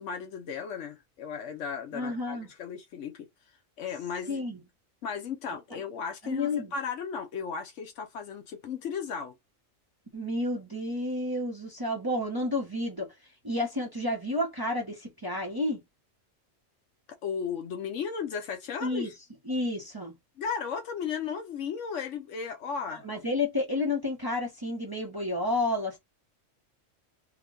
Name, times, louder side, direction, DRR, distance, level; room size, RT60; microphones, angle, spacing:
voice 1, 0.0-3.3 3.8-4.4 5.0-9.3 17.2-19.1 20.4-23.0, left 6 dB, 70° left, 1.1 m, -35 dB
voice 2, 1.9-2.5 4.3-4.6 6.2-6.7 10.1-13.1 13.4-15.8 18.8-19.1 19.5-20.1 23.0-26.0, left 2 dB, 20° right, 0.8 m, -30 dB
3.5 x 2.2 x 3.5 m
omnidirectional pair, 1.4 m